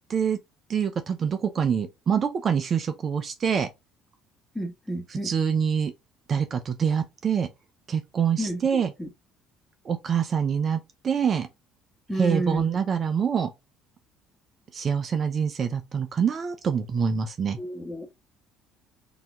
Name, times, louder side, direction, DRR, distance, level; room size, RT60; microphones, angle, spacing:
voice 1, 0.7-3.7 5.1-5.9 6.3-7.5 7.9-8.9 9.8-11.5 12.1-13.5 14.7-17.6, right 7 dB, 45° right, 0.6 m, -25 dB
voice 2, 4.5-5.3 8.4-9.1 12.1-12.6 17.6-18.1, right 1 dB, 10° left, 1.4 m, -31 dB
3.9 x 2.8 x 3.4 m
supercardioid pair, 80°, 0 cm